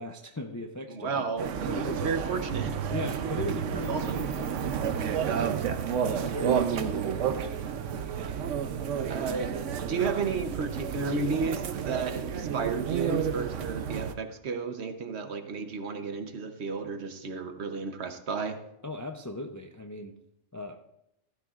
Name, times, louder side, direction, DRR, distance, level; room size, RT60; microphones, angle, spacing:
voice 1, 0.0-1.3 1.7-2.1 2.9-4.6 4.9-5.4 6.1-7.7 18.8-20.1 20.5-20.8, left 2 dB, 25° left, 5 dB, 0.4 m, -38 dB
voice 2, 0.9-1.5 1.8-2.8 3.9-4.3 9.1-9.5 9.9-18.6, right 4 dB, 65° right, 8 dB, 1.2 m, -32 dB
sound 1, 1.4-14.1, right 8 dB, 90° right, 1.1 m, -31 dB
15.0 x 12.5 x 2.4 m, 0.83 s
omnidirectional pair, 1.2 m